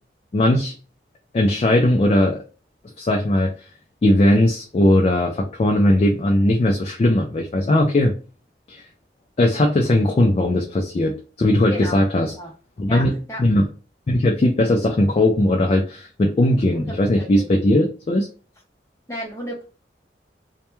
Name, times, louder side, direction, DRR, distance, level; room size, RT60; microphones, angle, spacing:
voice 1, 0.3-0.7 1.3-2.4 3.0-3.5 4.0-8.1 8.7-8.8 9.4-12.3 12.8-13.7 14.1-18.3, left 1 dB, 35° left, 1 dB, 0.3 m, -18 dB
voice 2, 11.7-12.0 12.3-12.5 12.9-13.4 16.7-17.5 19.1-19.6, equal, 15° left, -1 dB, 0.7 m, -33 dB
2.2 x 2.1 x 2.9 m, 0.35 s
head